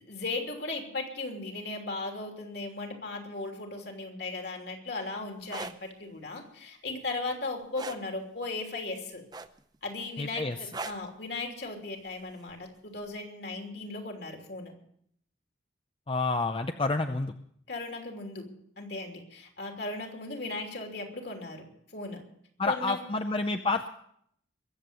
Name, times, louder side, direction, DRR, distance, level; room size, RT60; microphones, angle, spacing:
voice 1, 0.0-9.2 9.8-14.7 17.7-18.5 18.8-21.7 21.9-22.2 22.6-23.0, left 3 dB, 60° left, 2 dB, 3.1 m, -37 dB
sound 1, 5.4-5.8 7.8-8.0 9.3-9.8 10.7-11.1 12.5-12.7, right 3 dB, 20° right, 0.6 m, -38 dB
voice 2, 10.2-10.6 16.1-17.3 22.6-23.9, left 3 dB, 30° left, 7 dB, 0.5 m, -29 dB
22.5 x 7.9 x 6.9 m, 0.69 s
head